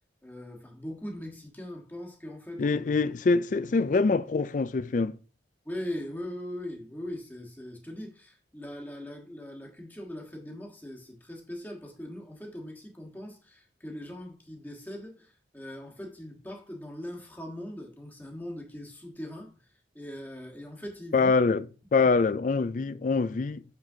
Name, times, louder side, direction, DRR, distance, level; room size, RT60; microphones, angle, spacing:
voice 1, 0.2-2.8 5.6-21.3, left 1 dB, 10° left, 1.3 m, -40 dB
voice 2, 2.6-5.2 21.1-21.7 21.9-23.6, left 4 dB, 45° left, 0.3 m, -24 dB
6.7 x 6.0 x 2.7 m
head